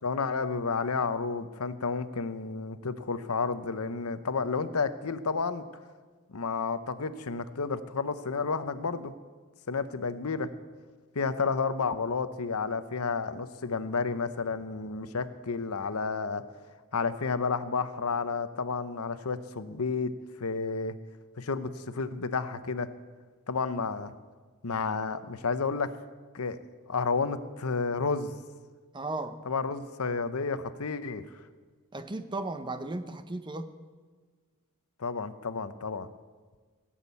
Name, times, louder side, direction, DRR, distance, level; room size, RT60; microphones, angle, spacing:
voice 1, 0.0-5.6 6.3-9.1 9.7-10.5 11.1-16.4 16.9-20.1 20.4-20.9 21.4-22.9 23.5-24.1 24.6-25.9 26.3-26.6 26.9-28.4 29.4-31.2 35.0-36.1, left 4 dB, 85° left, 12 dB, 0.8 m, -31 dB
voice 2, 28.9-29.4 31.9-33.7, right 2 dB, 20° right, 10 dB, 0.7 m, -35 dB
16.5 x 7.5 x 8.4 m, 1.5 s
head